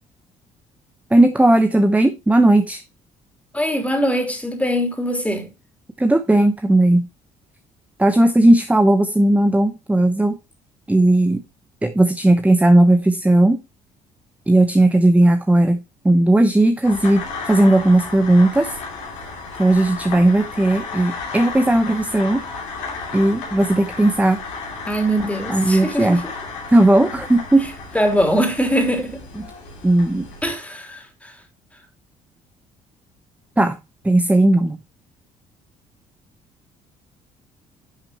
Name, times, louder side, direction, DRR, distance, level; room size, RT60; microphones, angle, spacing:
voice 1, 1.1-2.8 6.0-7.1 8.0-10.4 10.9-11.4 11.8-13.6 14.5-18.8 19.6-22.4 23.1-24.4 25.5-26.2 26.7-27.7 29.8-30.3 33.6-33.8 34.0-34.8, right 1 dB, 10° right, 0.8 m, -16 dB
voice 2, 3.5-5.5 24.9-26.3 27.9-29.2 30.4-31.3, equal, 10° left, 3.2 m, -22 dB
sound 1, 16.8-30.5, left 4 dB, 80° left, 2.7 m, -33 dB
11.0 x 6.0 x 2.9 m
hypercardioid pair, 50°, 17 cm